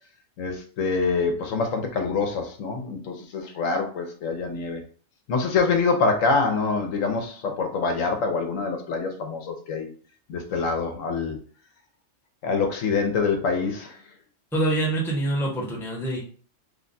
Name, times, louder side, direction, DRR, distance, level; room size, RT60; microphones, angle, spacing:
voice 1, 0.4-4.8 5.3-9.9 10.3-11.4 12.4-14.0, left 4 dB, 85° left, 4 dB, 1.1 m, -25 dB
voice 2, 14.5-16.2, right 2 dB, ahead, -2 dB, 0.8 m, -25 dB
3.3 x 2.3 x 3.9 m, 0.42 s
omnidirectional pair, 1.3 m